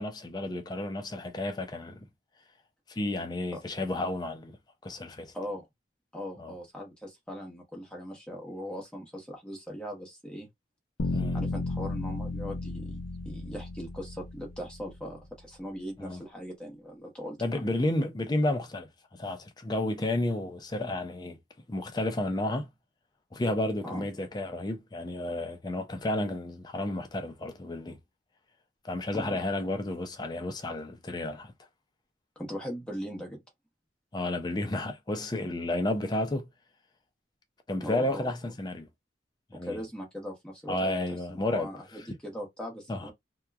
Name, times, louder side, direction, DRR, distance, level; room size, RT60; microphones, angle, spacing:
voice 1, 0.0-2.0 2.9-4.6 4.8-5.3 6.4-6.5 11.1-11.4 16.0-16.2 17.4-18.9 19.2-21.4 21.7-22.7 23.3-28.0 28.8-31.5 34.1-36.5 37.7-38.9 39.5-39.8 40.7-41.7 42.9-43.1, left 1 dB, 20° left, 0.4 m, -31 dB
voice 2, 5.3-5.7 6.1-10.5 11.3-17.6 23.8-24.1 29.1-29.4 32.4-33.4 37.8-38.3 39.6-40.9 41.4-43.1, equal, 5° left, 0.9 m, -39 dB
sound 1, 11.0-15.1, left 2 dB, 65° left, 0.7 m, -34 dB
2.8 x 2.2 x 2.3 m
head